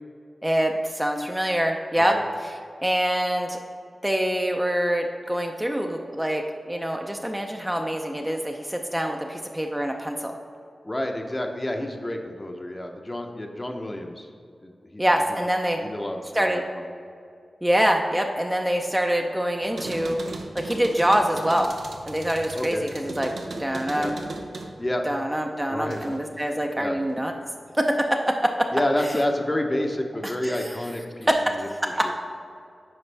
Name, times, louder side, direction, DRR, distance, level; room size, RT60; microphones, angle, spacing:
voice 1, 0.4-2.2 2.4-3.6 4.0-10.3 15.0-15.8 16.3-16.6 17.6-20.2 20.5-21.7 22.1-23.3 23.6-24.1 25.0-27.3 27.8-28.7 30.2-30.7 31.3-31.5 31.8-32.1, equal, 10° right, 3 dB, 0.6 m, -25 dB
voice 2, 10.8-14.3 14.6-15.0 15.8-16.8 22.5-22.8 23.9-24.1 24.8-25.0 25.7-26.1 26.8-27.0 28.7-31.3 32.0-32.1, left 1 dB, 25° left, 3 dB, 0.8 m, -29 dB
sound 1, 19.6-26.3 26.7-27.5, right 2 dB, 85° right, 0.6 m, -38 dB
9.5 x 4.9 x 3.4 m, 2.4 s
cardioid pair, 50°, 0 cm